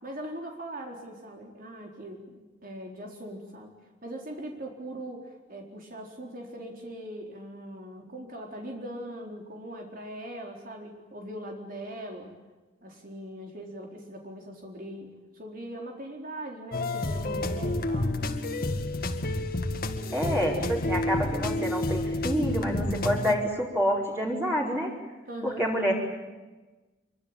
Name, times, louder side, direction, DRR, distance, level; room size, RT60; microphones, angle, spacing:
voice 1, 0.0-3.7 4.0-12.3 12.8-18.1 25.3-25.7, right 1 dB, 50° right, 1 dB, 4.2 m, -40 dB
sound 1, 16.7-23.4, left 1 dB, 55° left, 2.1 m, -29 dB
voice 2, 20.1-24.9 25.4-25.9, equal, 15° right, -3 dB, 4.7 m, -28 dB
26.0 x 24.0 x 9.1 m, 1.2 s
head